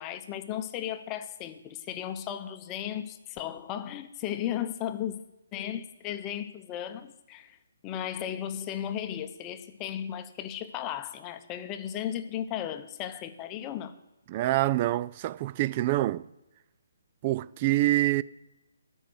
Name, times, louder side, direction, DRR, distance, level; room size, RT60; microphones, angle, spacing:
voice 1, 0.0-5.2 5.5-7.6 7.8-13.9, left 10 dB, 20° left, 0.8 m, -35 dB
voice 2, 14.3-16.3 17.2-18.2, right 16 dB, 30° right, 0.3 m, -26 dB
13.0 x 5.5 x 7.8 m
hypercardioid pair, 155°, 0 cm